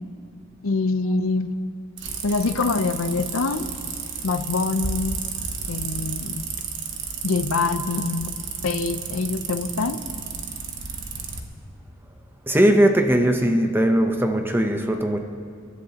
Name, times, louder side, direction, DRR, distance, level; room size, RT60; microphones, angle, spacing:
voice 1, 0.6-1.5 2.2-3.7 4.2-5.2 5.7-6.4 7.2-8.4 8.6-10.0, left 4 dB, 85° left, 10 dB, 0.6 m, -24 dB
sound 1, 2.0-11.4, right 5 dB, 60° right, 1.2 m, -32 dB
voice 2, 12.5-15.2, right 1 dB, 10° right, 4 dB, 0.8 m, -19 dB
29.0 x 11.5 x 2.9 m, 2.3 s
head